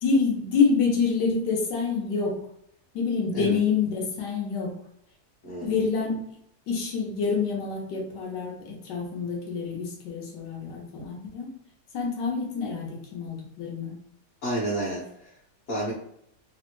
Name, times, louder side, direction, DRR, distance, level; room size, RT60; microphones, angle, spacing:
voice 1, 0.0-2.4 2.9-4.8 5.6-6.2 6.7-11.5 11.9-14.0, left 5 dB, 85° left, -1 dB, 1.3 m, -27 dB
voice 2, 5.4-5.8 14.4-15.3 15.7-15.9, right 1 dB, 55° left, -8 dB, 1.3 m, -30 dB
3.3 x 2.1 x 2.9 m, 0.74 s
omnidirectional pair, 1.8 m